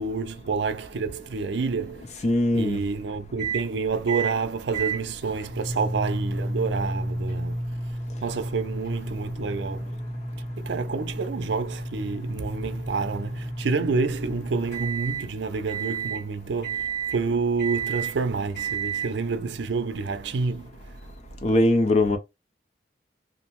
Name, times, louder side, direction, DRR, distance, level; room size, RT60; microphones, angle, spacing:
voice 1, 0.0-2.1 2.5-7.6 8.2-9.9 10.6-20.7, right 4 dB, 75° right, 0.4 m, -28 dB
voice 2, 2.2-2.8 21.4-22.2, left 1 dB, 40° left, 0.5 m, -20 dB
sound 1, 3.4-3.7 4.1-4.4 4.7-15.3 15.7-16.2 16.6-17.2 17.6-18.1 18.5-19.1, right 3 dB, 85° left, 1.5 m, -31 dB
2.5 x 2.1 x 2.9 m
head